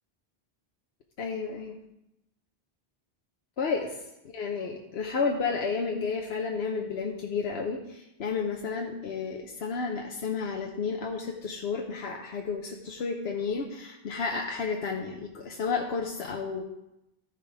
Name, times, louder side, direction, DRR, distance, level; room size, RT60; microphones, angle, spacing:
voice 1, 1.2-1.8 3.6-3.8 4.3-16.6, left 5 dB, 85° left, 1 dB, 1.1 m, -31 dB
13.5 x 4.8 x 4.9 m, 0.89 s
omnidirectional pair, 1.0 m